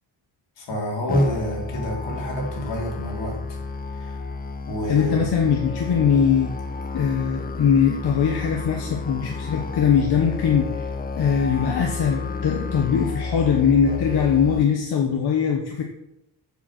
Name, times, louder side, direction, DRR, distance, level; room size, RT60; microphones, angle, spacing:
voice 1, 0.6-3.4 3.9-4.3 4.7-5.3, equal, 80° left, -1 dB, 3.2 m, -28 dB
Musical instrument, 1.1-14.6, left 4 dB, 20° left, 0.5 m, -31 dB
voice 2, 4.9-6.5 6.9-10.8 11.2-15.8, left 7 dB, 60° left, 1 dB, 1.2 m, -21 dB
7.3 x 7.1 x 5.9 m, 0.85 s
wide cardioid pair, 165°, 43 cm